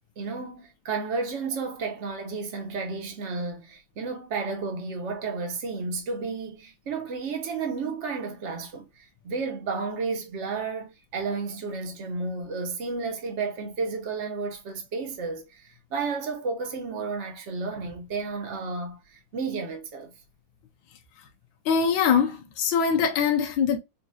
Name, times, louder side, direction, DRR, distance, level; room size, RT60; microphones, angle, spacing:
voice 1, 0.2-20.1, right 4 dB, 55° right, 0.8 m, -32 dB
voice 2, 21.7-23.8, left 6 dB, 75° left, 1.5 m, -23 dB
4.1 x 2.3 x 2.6 m
omnidirectional pair, 2.2 m